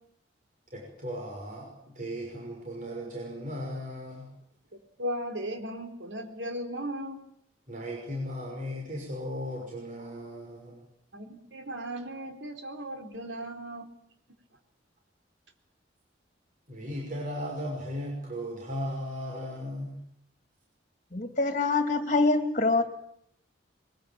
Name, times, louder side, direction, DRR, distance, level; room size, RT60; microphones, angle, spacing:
voice 1, 0.7-4.3 7.7-10.8 16.7-20.0, equal, 45° right, 6.0 m, -36 dB
voice 2, 5.0-7.2 11.1-13.9, equal, 80° right, 4.2 m, -36 dB
voice 3, 21.1-22.8, left 3 dB, 40° left, 2.6 m, -25 dB
22.5 x 21.5 x 8.9 m
head